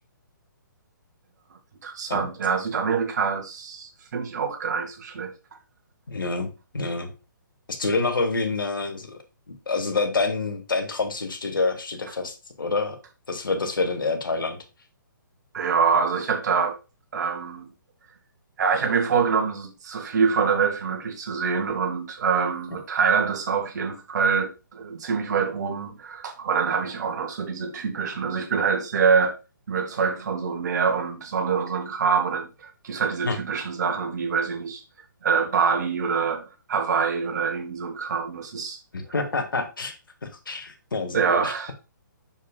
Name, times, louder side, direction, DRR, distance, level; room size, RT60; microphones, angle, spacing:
voice 1, 1.8-5.3 15.5-16.8 17.1-17.7 18.6-29.3 29.7-34.8 35.2-36.4 36.7-38.8 41.1-41.7, right 6 dB, 55° right, 2.2 m, -25 dB
voice 2, 6.1-7.1 7.7-9.2 9.7-13.0 13.3-14.6 33.2-33.4 38.9-39.9 40.2-41.5, left 3 dB, 75° left, 2.1 m, -27 dB
7.1 x 6.5 x 2.4 m
figure-of-eight pair, 135°, 11 cm